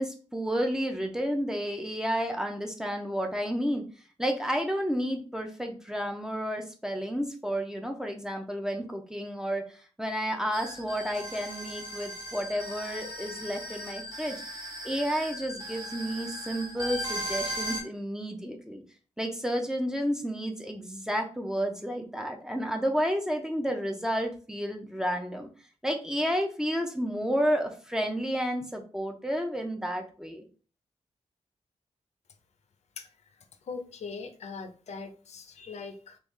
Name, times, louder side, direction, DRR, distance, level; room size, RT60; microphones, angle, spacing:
voice 1, 0.0-3.8 4.2-14.4 14.8-18.8 19.2-25.5 25.8-30.4, equal, 5° right, 3 dB, 0.4 m, -31 dB
sound 1, 10.5-17.8, equal, 35° right, 1.0 m, -37 dB
voice 2, 33.6-36.2, left 4 dB, 70° left, 7 dB, 0.5 m, -41 dB
3.4 x 2.3 x 3.0 m, 0.38 s
wide cardioid pair, 170°, 12 cm